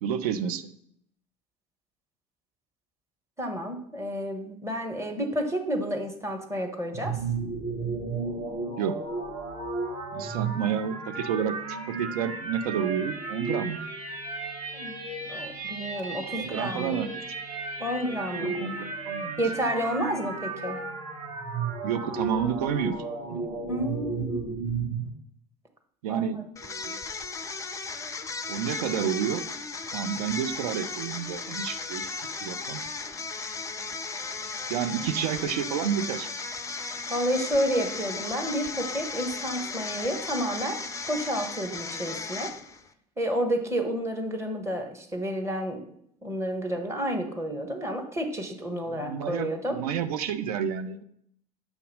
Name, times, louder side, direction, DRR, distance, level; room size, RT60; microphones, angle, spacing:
voice 1, 0.0-0.7 8.8-9.0 10.1-13.8 16.3-17.1 18.4-19.4 21.8-23.0 23.3-23.5 26.0-27.0 28.5-29.5 29.9-32.8 34.7-36.3 48.8-51.0, right 8 dB, 65° right, 11 dB, 0.5 m, -30 dB
voice 2, 3.4-7.2 14.7-15.0 15.3-17.0 17.8-18.6 19.4-20.8 23.7-24.6 26.1-26.3 37.1-40.8 41.1-42.5 43.2-45.8 46.2-49.8, equal, 15° right, 2 dB, 1.3 m, -30 dB
sound 1, 6.9-25.1, right 4 dB, 40° right, 1.2 m, -34 dB
sound 2, 26.6-42.9, left 4 dB, 15° left, 0.5 m, -36 dB
7.0 x 2.8 x 5.2 m, 0.70 s
figure-of-eight pair, 65°, 20 cm